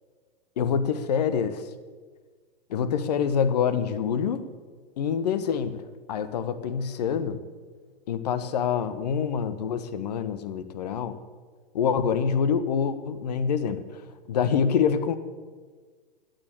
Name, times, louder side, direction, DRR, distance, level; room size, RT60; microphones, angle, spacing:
voice 1, 0.6-1.6 2.7-4.4 5.0-5.8 6.1-7.4 8.1-11.2 11.7-14.0 14.3-15.2, left 7 dB, 45° left, 13 dB, 1.2 m, -26 dB
14.0 x 9.3 x 9.8 m, 1.5 s
figure-of-eight pair, 110°, 29 cm